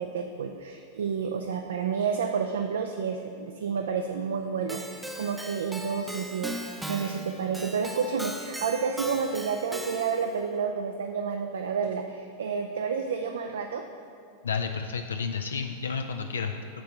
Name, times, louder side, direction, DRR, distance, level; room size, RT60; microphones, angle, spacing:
voice 1, 0.0-6.6 6.9-13.8, right 6 dB, 65° right, 5 dB, 0.4 m, -30 dB
Keyboard (musical), 4.7-10.4, equal, 5° right, 0.6 m, -38 dB
voice 2, 14.4-16.8, left 5 dB, 70° left, 6 dB, 0.3 m, -31 dB
9.4 x 3.7 x 5.8 m, 2.4 s
figure-of-eight pair, 90°, 0 cm